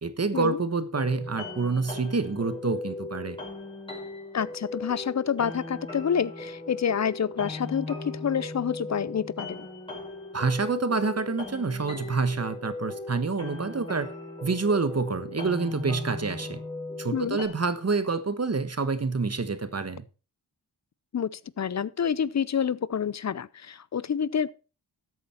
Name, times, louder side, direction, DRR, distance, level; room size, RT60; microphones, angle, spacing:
voice 1, 0.0-3.4 10.3-14.1 14.4-16.6 17.0-20.0, right 4 dB, 40° right, 1.3 m, -27 dB
sound 1, 0.9-17.5, left 2 dB, 10° left, 5.2 m, -38 dB
voice 2, 4.3-9.7 17.1-17.4 21.1-24.5, left 7 dB, 40° left, 0.5 m, -28 dB
13.5 x 8.2 x 4.3 m
wide cardioid pair, 75°, 41 cm